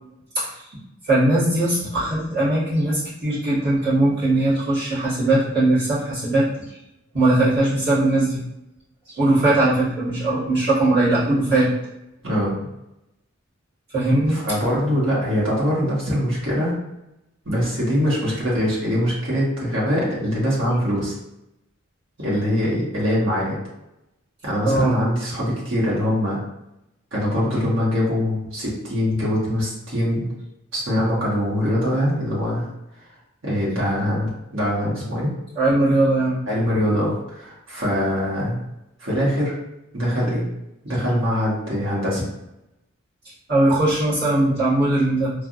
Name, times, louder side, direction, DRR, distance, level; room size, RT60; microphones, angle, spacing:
voice 1, 0.3-0.7 1.0-6.5 7.1-8.4 9.1-11.7 13.9-14.4 24.6-25.0 35.5-36.4 43.5-45.3, right 2 dB, 50° right, -13 dB, 1.5 m, -20 dB
voice 2, 14.3-16.7 17.4-21.2 22.2-23.6 24.4-26.4 27.1-30.3 30.7-32.7 33.4-35.3 36.5-38.6 39.0-39.5 39.9-40.5 40.8-42.2, equal, 65° right, -7 dB, 1.2 m, -23 dB
3.3 x 2.3 x 2.5 m, 0.88 s
head